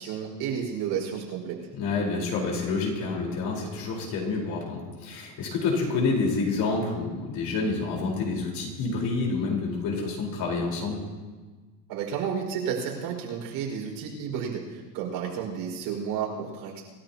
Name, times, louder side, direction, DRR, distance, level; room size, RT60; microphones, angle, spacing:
voice 1, 0.0-1.6 11.9-16.8, right 7 dB, 55° right, 0 dB, 5.5 m, -31 dB
voice 2, 1.8-11.0, left 4 dB, 45° left, -1 dB, 4.5 m, -28 dB
27.0 x 13.0 x 2.9 m, 1.4 s
supercardioid pair, 135°, 50 cm